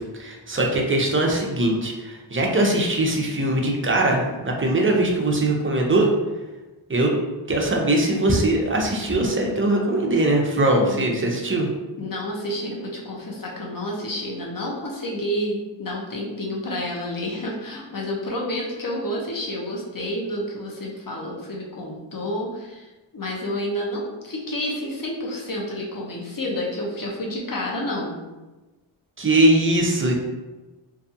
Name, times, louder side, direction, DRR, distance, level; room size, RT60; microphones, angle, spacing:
voice 1, 0.2-6.1 6.9-7.1 7.5-11.7 29.2-30.2, right 1 dB, 25° right, 0 dB, 0.5 m, -21 dB
voice 2, 10.8-11.4 12.0-28.2, left 1 dB, 45° left, -2 dB, 0.7 m, -30 dB
2.6 x 2.3 x 2.6 m, 1.1 s
wide cardioid pair, 55°, 48 cm